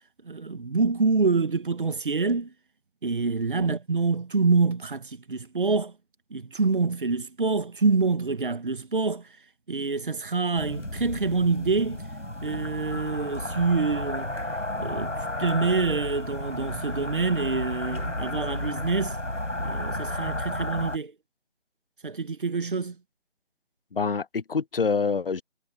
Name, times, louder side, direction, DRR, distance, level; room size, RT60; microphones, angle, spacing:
voice 1, 0.2-2.5 3.0-5.9 6.3-9.3 9.7-12.0 12.4-14.3 14.8-19.2 19.6-21.1 22.0-23.0, right 4 dB, 45° right, 1.9 m, -26 dB
sound 1, 10.6-21.0, left 1 dB, 90° left, 5.6 m, -32 dB
voice 2, 23.9-25.4, left 5 dB, 50° left, 0.5 m, -26 dB
figure-of-eight pair, 160°, 36 cm